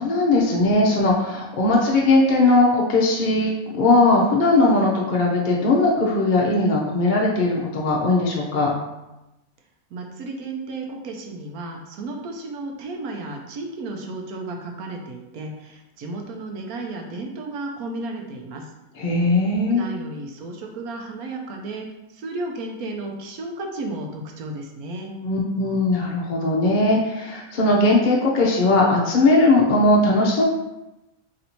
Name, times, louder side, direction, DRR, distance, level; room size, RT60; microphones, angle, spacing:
voice 1, 0.0-8.7 19.0-19.9 25.2-30.4, left 2 dB, 60° left, -2 dB, 0.5 m, -19 dB
voice 2, 9.9-18.7 19.7-25.1, right 2 dB, 85° right, 2 dB, 1.1 m, -33 dB
3.2 x 2.7 x 4.3 m, 0.97 s
omnidirectional pair, 1.5 m